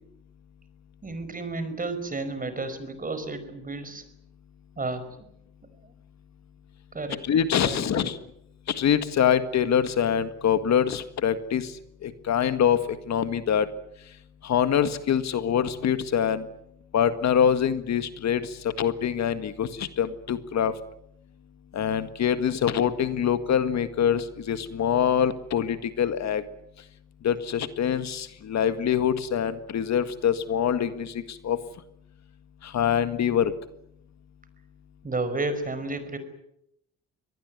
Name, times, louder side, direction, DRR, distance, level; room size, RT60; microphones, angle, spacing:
voice 1, 1.0-4.0 4.8-5.2 6.9-7.2 7.6-8.1 35.0-36.2, right 2 dB, 25° right, 11 dB, 5.2 m, -32 dB
voice 2, 7.2-8.2 8.7-11.7 12.0-13.7 14.4-16.5 16.9-20.7 21.7-26.4 27.2-31.6 32.6-33.5, left 8 dB, 65° left, 11 dB, 1.8 m, -24 dB
23.5 x 19.0 x 9.5 m, 0.77 s
cardioid pair, 90°, 30 cm